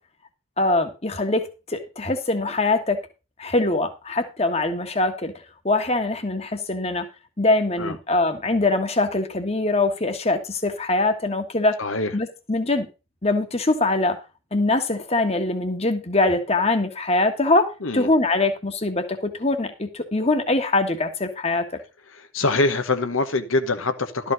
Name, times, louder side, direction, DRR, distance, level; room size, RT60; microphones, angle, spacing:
voice 1, 0.6-3.0 3.4-5.3 5.6-7.1 7.4-11.8 12.1-12.9 13.2-14.2 14.5-21.7, left 2 dB, 30° left, 1.5 m, -23 dB
voice 2, 11.8-12.1 17.8-18.1 22.1-24.3, left 3 dB, 80° left, 1.2 m, -24 dB
12.5 x 5.2 x 6.2 m
head